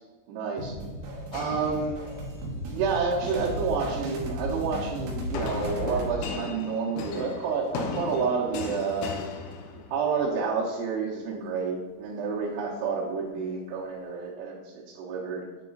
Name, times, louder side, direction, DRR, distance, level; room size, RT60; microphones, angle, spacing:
voice 1, 0.3-0.7 1.3-2.0 2.7-9.1 9.9-15.5, right 5 dB, 90° right, -6 dB, 3.2 m, -29 dB
sound 1, 0.6-6.2, right 1 dB, 65° right, 2.9 m, -35 dB
sound 2, 1.3-2.4 3.1-3.6 5.3-10.2, left 4 dB, 85° left, 3.1 m, -37 dB
8.6 x 3.9 x 3.7 m, 1.3 s
omnidirectional pair, 5.4 m